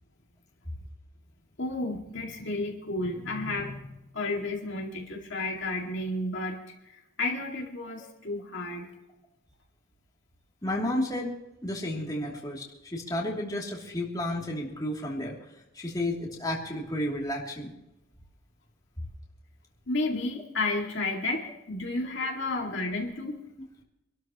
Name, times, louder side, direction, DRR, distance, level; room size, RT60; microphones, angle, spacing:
voice 1, 1.6-6.6 6.9-8.9 19.9-23.4, left 2 dB, 55° left, -1 dB, 2.2 m, -32 dB
voice 2, 10.6-11.3 11.6-15.4 15.7-17.7 22.5-22.6, left 1 dB, 20° left, -3 dB, 2.9 m, -32 dB
26.5 x 13.0 x 3.0 m, 0.92 s
head